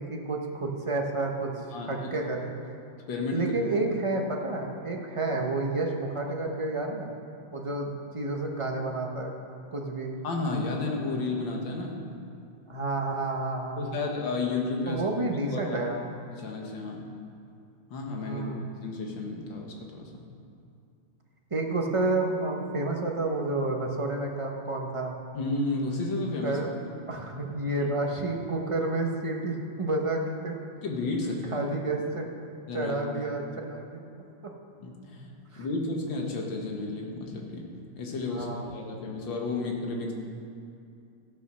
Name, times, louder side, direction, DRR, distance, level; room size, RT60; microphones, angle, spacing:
voice 1, 0.0-1.5 1.9-2.5 3.3-7.1 7.5-9.3 9.7-10.2 12.7-14.0 14.9-16.0 18.2-18.7 21.5-25.1 26.4-26.7 27.1-30.5 31.5-32.3 32.7-34.0 35.5-35.7 38.3-38.7, right 2 dB, 25° right, 1 dB, 0.7 m, -30 dB
voice 2, 1.7-2.1 3.1-3.5 10.2-12.0 13.8-15.1 15.5-15.8 16.3-17.0 17.9-18.4 18.8-20.1 25.3-26.6 27.8-27.9 30.8-31.6 32.7-33.0 34.8-37.7 38.0-40.1, left 3 dB, 75° left, 0 dB, 2.2 m, -32 dB
13.5 x 8.4 x 6.2 m, 2.5 s
omnidirectional pair, 2.1 m